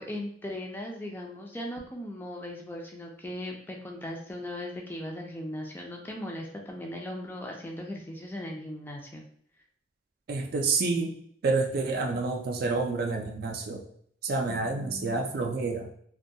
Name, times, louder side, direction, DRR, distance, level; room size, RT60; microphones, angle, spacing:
voice 1, 0.0-9.2 14.5-15.2, left 1 dB, 10° left, 1 dB, 0.3 m, -38 dB
voice 2, 10.3-11.1 11.4-13.8 14.2-15.9, right 3 dB, 60° right, 3 dB, 0.4 m, -28 dB
2.3 x 2.2 x 2.6 m, 0.64 s
head